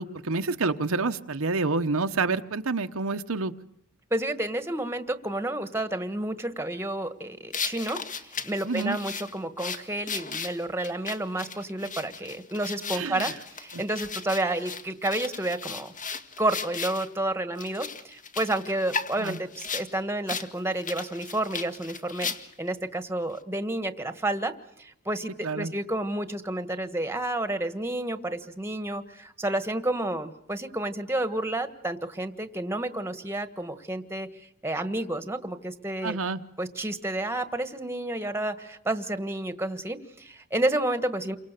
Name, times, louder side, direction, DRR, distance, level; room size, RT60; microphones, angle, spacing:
voice 1, 0.0-3.5 8.6-9.0 12.9-13.3 13.7-13.8 19.2-19.4 25.4-25.7 36.0-36.4, right 3 dB, 70° right, 7 dB, 1.0 m, -28 dB
voice 2, 4.1-15.9 16.4-22.3 22.6-24.5 24.8-36.2 36.6-41.4, right 1 dB, 10° right, 10 dB, 1.5 m, -30 dB
sound 1, 7.5-17.1 17.6-19.9 20.3-20.5 20.8-22.7, left 5 dB, 35° left, 1.8 m, -36 dB
29.0 x 24.5 x 6.8 m, 0.75 s
head